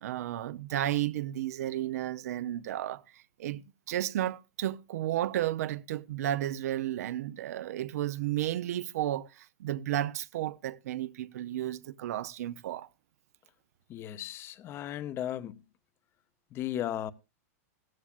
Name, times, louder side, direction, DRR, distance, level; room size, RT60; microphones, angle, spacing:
voice 1, 0.0-12.9, right 13 dB, 75° right, 0.6 m, -33 dB
voice 2, 13.9-15.6 16.5-17.1, left 11 dB, 30° left, 0.7 m, -35 dB
16.0 x 14.0 x 2.4 m
supercardioid pair, 145°, 8 cm